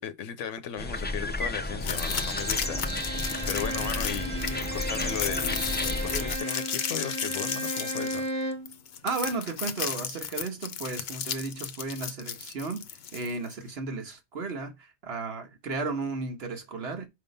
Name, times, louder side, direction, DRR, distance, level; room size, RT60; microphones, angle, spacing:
voice 1, 0.0-2.9 3.5-5.6 6.0-8.3, left 9 dB, 85° left, 1.0 m, -36 dB
sound 1, 0.8-6.4, left 2 dB, 15° left, 0.4 m, -32 dB
sound 2, 1.8-13.5, left 8 dB, 60° left, 0.9 m, -34 dB
Bowed string instrument, 1.9-8.7, right 1 dB, 75° right, 1.6 m, -35 dB
voice 2, 9.0-17.1, right 3 dB, 55° right, 1.5 m, -34 dB
5.3 x 4.9 x 5.3 m
omnidirectional pair, 1.2 m